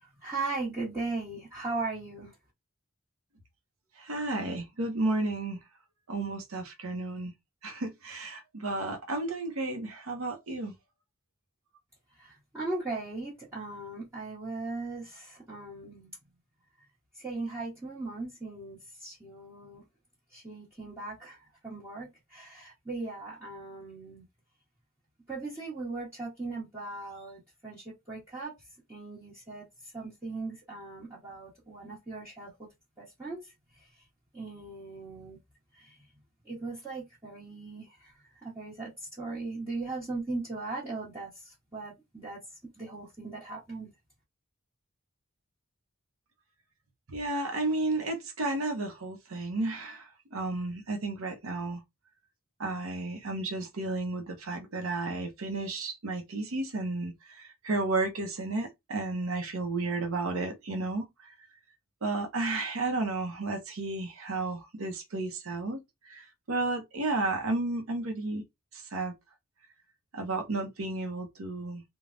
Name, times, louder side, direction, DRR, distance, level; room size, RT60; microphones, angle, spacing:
voice 1, 0.0-2.3 12.2-16.2 17.2-19.8 20.3-24.2 25.3-28.5 28.9-29.7 29.9-32.7 33.0-33.5 34.3-35.4 35.7-36.0 36.4-38.1 38.4-38.9 39.2-42.4 42.8-43.9, right 3 dB, 10° right, 1.1 m, -38 dB
voice 2, 4.0-5.6 6.1-7.3 7.6-10.7 47.1-51.8 52.6-61.3 62.0-68.4 68.7-69.1 70.1-71.8, right 2 dB, 70° right, 0.7 m, -32 dB
3.3 x 2.2 x 2.4 m
head